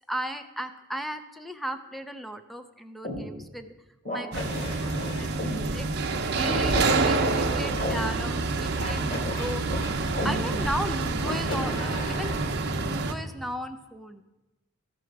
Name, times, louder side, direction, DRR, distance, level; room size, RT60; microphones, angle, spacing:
voice 1, 0.1-3.7 4.1-9.6 10.2-12.4 12.7-14.2, equal, ahead, 8 dB, 0.5 m, -36 dB
sound 1, 3.0-3.2 4.1-5.6 6.4-8.0 8.8-10.3 11.2-12.5, left 1 dB, 45° left, 2.4 m, -33 dB
sound 2, 4.3-13.1, right 3 dB, 55° right, 0.7 m, -27 dB
13.5 x 6.1 x 4.6 m, 1.1 s
head